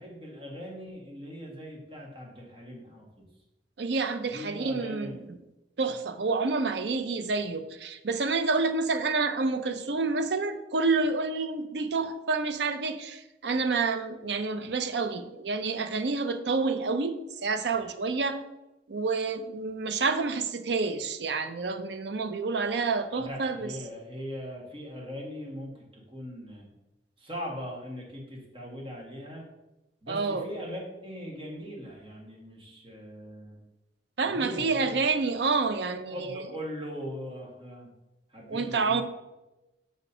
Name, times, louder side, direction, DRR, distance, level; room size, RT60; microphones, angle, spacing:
voice 1, 0.0-3.3 4.3-5.2 23.2-26.6 27.2-29.5 30.0-33.6 34.2-35.1 36.1-37.9 38.3-39.0, equal, 30° right, -2 dB, 1.7 m, -40 dB
voice 2, 3.8-5.4 5.8-17.1 17.4-18.4 18.9-23.7 30.1-30.5 34.2-36.5 38.5-39.0, right 4 dB, 70° right, 9 dB, 0.6 m, -28 dB
6.0 x 4.3 x 5.5 m, 0.99 s
head